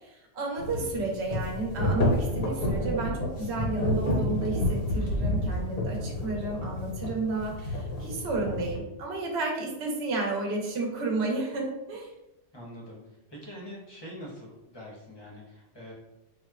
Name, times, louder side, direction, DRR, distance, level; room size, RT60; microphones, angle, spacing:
voice 1, 0.0-12.1, right 2 dB, 65° right, 0 dB, 1.0 m, -32 dB
sound 1, 0.6-8.8, left 1 dB, 60° left, 0.8 m, -29 dB
voice 2, 0.7-1.1 12.5-13.0 13.3-15.9, equal, 25° left, -4 dB, 0.6 m, -44 dB
4.2 x 2.1 x 2.3 m, 0.92 s
omnidirectional pair, 1.2 m